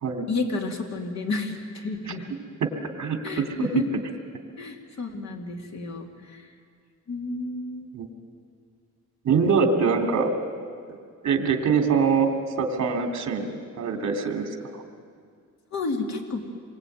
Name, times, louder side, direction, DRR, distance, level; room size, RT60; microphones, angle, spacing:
voice 1, 0.3-2.2 3.2-3.8 4.6-6.5 7.1-7.9 15.7-16.4, left 3 dB, 60° left, 2 dB, 2.8 m, -31 dB
voice 2, 3.0-3.8 7.9-8.1 9.2-10.3 11.2-12.3 12.6-13.5 13.8-14.5, right 5 dB, 65° right, 4 dB, 3.0 m, -23 dB
27.0 x 23.0 x 9.4 m, 2.1 s
wide cardioid pair, 175°, 30 cm